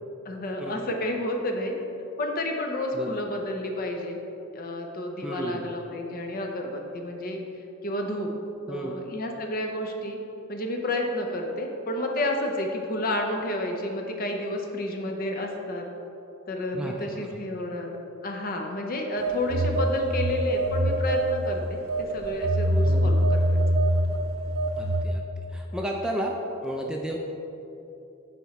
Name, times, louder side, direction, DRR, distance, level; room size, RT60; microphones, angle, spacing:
voice 1, 0.2-1.7 2.2-4.2 4.5-7.4 7.8-8.3 8.7-10.2 10.5-15.8 16.5-18.0 18.2-23.6, left 1 dB, 45° left, 2 dB, 0.7 m, -30 dB
voice 2, 5.2-5.6 8.7-8.9 16.7-17.4 22.8-23.2 24.8-25.2 25.5-27.2, right 1 dB, 5° right, 0 dB, 0.4 m, -33 dB
Telephone, 19.2-21.5 21.9-25.0, right 1 dB, 70° right, 0.5 m, -24 dB
7.0 x 4.4 x 4.1 m, 2.9 s
head